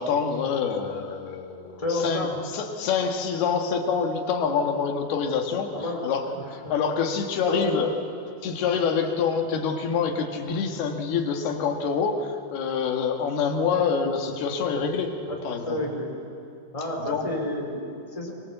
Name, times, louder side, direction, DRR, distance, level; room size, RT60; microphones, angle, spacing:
voice 1, 0.0-2.3 2.5-7.9 8.4-15.1 15.4-15.8 17.0-17.3, left 6 dB, 65° left, 3 dB, 3.4 m, -26 dB
voice 2, 1.8-2.4 5.7-6.0 6.4-6.7 7.5-7.8 15.2-16.1 16.7-18.3, left 1 dB, 10° left, 0 dB, 3.3 m, -30 dB
24.0 x 24.0 x 8.0 m, 2.6 s
omnidirectional pair, 5.0 m